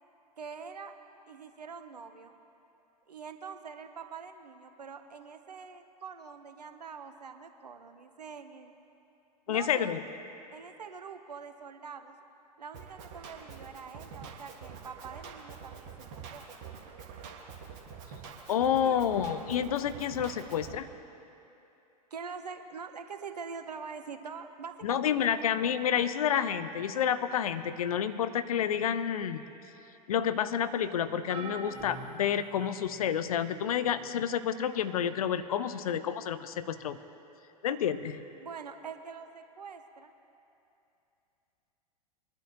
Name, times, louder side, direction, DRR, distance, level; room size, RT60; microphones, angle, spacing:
voice 1, 0.4-0.9 1.3-2.3 3.1-8.8 9.5-10.0 10.5-12.2 12.6-16.4 18.6-19.0 22.1-25.5 25.9-26.1 38.4-40.1, right 5 dB, 75° right, 8 dB, 0.9 m, -44 dB
voice 2, 9.5-10.0 18.5-20.9 24.8-29.4 30.1-37.0 37.6-38.2, left 9 dB, 60° left, 12 dB, 0.6 m, -29 dB
Drum kit, 12.7-20.7, right 6 dB, 45° right, 1.6 m, -46 dB
sound 1, 31.3-33.1 33.8-34.1 35.4-35.5, right 3 dB, 30° right, 1.2 m, -44 dB
22.5 x 11.5 x 2.9 m, 2.8 s
figure-of-eight pair, 90°, 21 cm